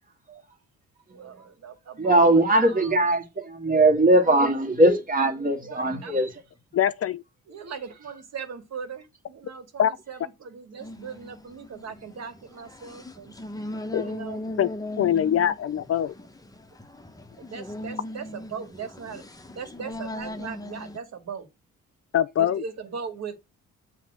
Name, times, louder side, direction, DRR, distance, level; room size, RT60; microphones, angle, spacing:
voice 1, 1.1-2.9 5.6-6.4 7.5-13.3 14.0-14.5 17.4-19.2 19.6-21.5 22.4-23.3, right 6 dB, 60° right, 2.2 m, -39 dB
voice 2, 2.0-6.3, right 1 dB, 30° right, 2.1 m, -20 dB
voice 3, 6.7-7.2 9.8-9.9 13.9-14.0 14.6-14.7 15.0-16.1 22.1-22.6, left 10 dB, 50° left, 0.6 m, -23 dB
sound 1, 10.8-21.0, left 1 dB, 10° left, 1.0 m, -38 dB
7.5 x 3.3 x 6.1 m
cardioid pair, 90°, 30 cm